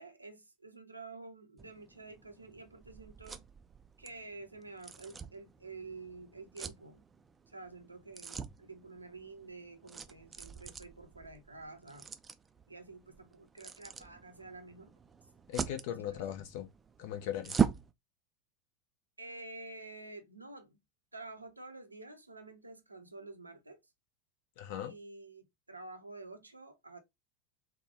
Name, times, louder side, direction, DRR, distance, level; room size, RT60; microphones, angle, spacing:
voice 1, 0.0-3.4 4.0-7.1 7.5-12.1 12.7-14.9 15.9-16.2 19.2-20.8 21.1-23.8 24.8-27.0, right 3 dB, 85° right, 0.6 m, -49 dB
sound 1, 1.6-17.9, right 6 dB, 20° right, 0.3 m, -41 dB
voice 2, 15.5-16.7 17.0-17.7 24.6-24.9, left 11 dB, 55° left, 0.7 m, -39 dB
3.2 x 2.1 x 2.9 m
figure-of-eight pair, 80°, 0 cm